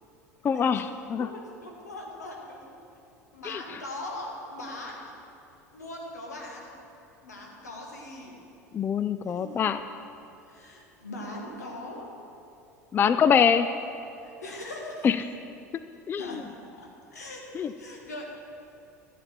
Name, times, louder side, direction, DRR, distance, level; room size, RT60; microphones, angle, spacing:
voice 1, 0.4-1.3 3.4-3.6 8.7-9.8 12.9-13.7 15.0-15.2 16.1-16.4 17.6-17.7, left 7 dB, 25° left, 11 dB, 0.3 m, -24 dB
voice 2, 1.1-2.8 3.3-5.0 5.7-6.7 7.2-8.4 9.3-9.6 10.5-12.0 14.2-15.1 16.2-18.2, left 1 dB, 75° left, 0 dB, 1.7 m, -41 dB
14.5 x 8.4 x 4.4 m, 2.7 s
figure-of-eight pair, 70°, 9 cm